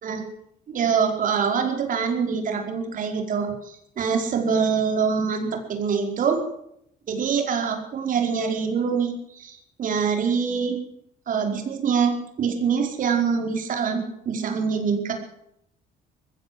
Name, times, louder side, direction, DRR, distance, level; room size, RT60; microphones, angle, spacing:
voice 1, 0.7-6.4 7.1-10.8 11.3-15.1, right 6 dB, 50° right, 4 dB, 4.9 m, -24 dB
20.5 x 16.0 x 7.9 m, 0.75 s
cardioid pair, 110°, 17 cm